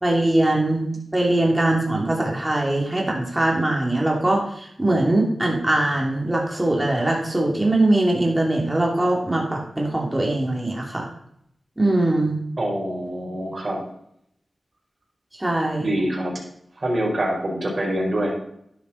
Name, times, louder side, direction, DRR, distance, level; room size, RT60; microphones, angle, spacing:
voice 1, 0.0-11.1 11.8-12.4 15.4-15.9, right 1 dB, 15° right, -1 dB, 3.0 m, -21 dB
voice 2, 12.6-13.8 15.8-16.4 16.8-18.3, right 1 dB, 45° right, -2 dB, 4.9 m, -25 dB
11.5 x 11.0 x 4.2 m, 0.72 s
wide cardioid pair, 75°, 0 cm